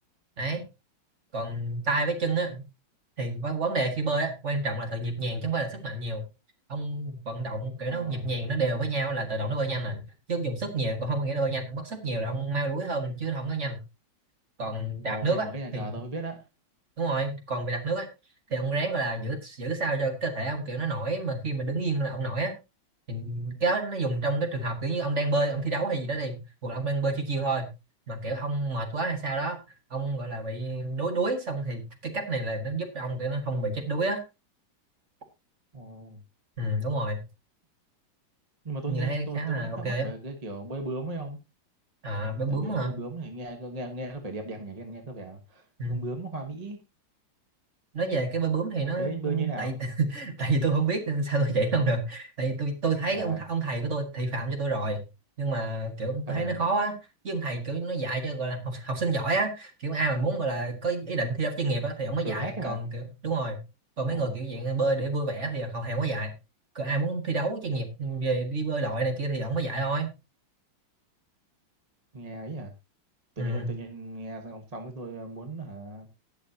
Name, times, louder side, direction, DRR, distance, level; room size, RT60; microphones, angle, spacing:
voice 1, 1.3-2.6 3.2-6.2 6.7-10.0 10.3-13.8 14.6-15.5 15.7-16.0 17.0-18.1 18.5-22.5 23.1-27.7 28.1-29.6 29.9-34.2 36.6-37.2 38.9-40.1 42.0-42.9 45.8-46.0 47.9-55.0 55.4-56.9 57.2-63.6 64.0-66.3 66.8-70.1 73.4-73.7, right 3 dB, 35° right, 5 dB, 2.0 m, -29 dB
voice 2, 7.9-8.2 15.0-16.4 35.7-36.2 38.6-41.4 42.5-46.8 48.9-49.8 53.1-53.4 56.3-56.6 62.2-62.8 64.1-64.4 72.1-72.7 73.4-76.1, right 2 dB, 20° right, 4 dB, 1.3 m, -37 dB
19.5 x 6.6 x 2.8 m, 0.26 s
omnidirectional pair, 2.2 m